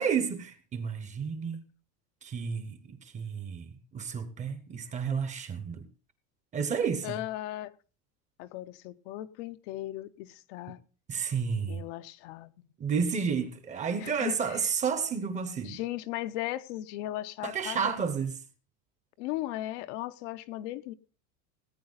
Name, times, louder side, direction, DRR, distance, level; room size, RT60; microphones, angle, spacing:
voice 1, 0.0-1.6 2.2-5.9 6.5-7.2 11.1-11.8 12.8-15.8 17.4-18.4, right 6 dB, 20° right, 0.8 m, -31 dB
voice 2, 7.0-7.7 8.4-10.8 11.7-12.5 14.0-14.6 15.6-17.9 19.2-20.9, left 15 dB, 60° left, 0.8 m, -37 dB
18.0 x 8.7 x 3.9 m
cardioid pair, 170°, 40 cm